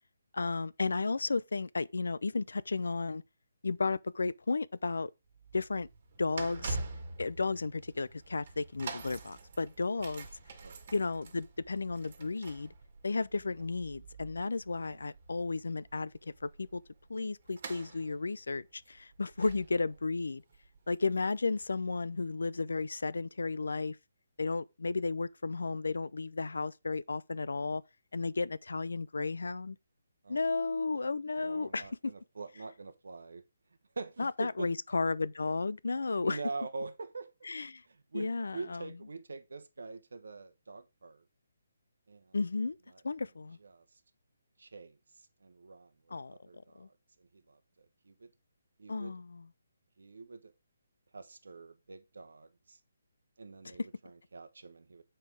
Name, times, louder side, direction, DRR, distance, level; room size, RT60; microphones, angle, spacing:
voice 1, 0.3-3.2 3.6-5.1 5.5-5.9 6.2-6.8 7.2-10.3 10.9-12.7 13.0-16.8 17.1-20.4 20.9-24.0 24.4-27.8 28.1-29.8 30.3-32.1 34.2-36.4 37.5-37.8 38.1-38.8 42.3-42.8 43.0-43.6 46.1-46.3 46.8-46.9 48.9-49.5, left 3 dB, 75° left, 0.4 m, -33 dB
sound 1, 5.3-22.3 22.9-23.0, right 3 dB, 50° right, 1.6 m, -46 dB
voice 2, 30.2-30.9 31.4-33.4 34.0-34.7 36.2-37.5 37.9-41.2 42.1-42.4 42.9-43.0 43.6-44.0 44.6-48.3 48.8-49.1 50.0-50.5 51.1-52.8 53.4-55.0, right 3 dB, 75° right, 0.9 m, -45 dB
7.0 x 4.5 x 4.7 m
figure-of-eight pair, 150°, 0 cm